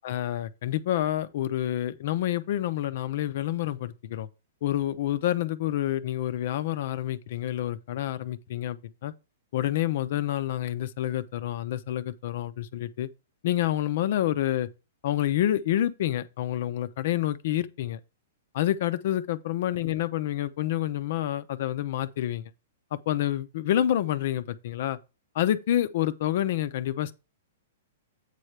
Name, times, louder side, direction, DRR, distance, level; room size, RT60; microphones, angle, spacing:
voice 1, 0.0-4.3 4.6-9.1 9.5-13.1 13.4-14.7 15.0-18.0 18.5-22.5 22.9-25.0 25.3-27.1, left 12 dB, 55° left, 0.6 m, -28 dB
8.4 x 3.3 x 6.5 m
hypercardioid pair, 150°, 0 cm